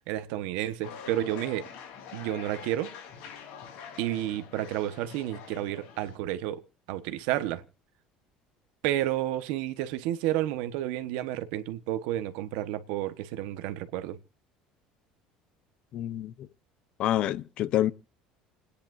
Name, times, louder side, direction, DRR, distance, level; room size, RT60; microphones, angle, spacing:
voice 1, 0.1-1.7 2.1-2.9 4.0-6.6 6.9-7.6 8.8-14.2, right 13 dB, 70° right, 1.2 m, -31 dB
sound 1, 0.8-6.2, left 7 dB, 65° left, 3.7 m, -45 dB
voice 2, 15.9-16.3 17.0-17.9, left 12 dB, 40° left, 0.6 m, -27 dB
29.5 x 10.0 x 2.6 m
cardioid pair, 175°, 2 cm